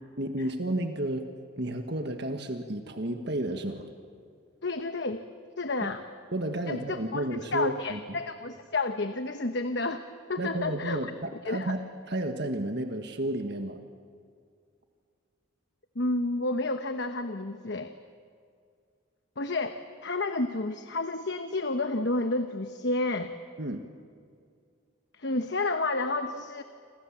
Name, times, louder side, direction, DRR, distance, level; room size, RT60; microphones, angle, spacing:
voice 1, 0.2-1.2 1.6-3.9 6.3-8.0 10.4-13.8 23.6-23.8, right 1 dB, 55° right, 5 dB, 1.5 m, -32 dB
voice 2, 4.6-5.2 5.6-6.0 6.7-11.1 11.4-11.7 15.9-18.0 19.4-23.3 25.2-26.6, left 2 dB, 55° left, 8 dB, 1.1 m, -30 dB
29.0 x 26.5 x 7.4 m, 2.3 s
head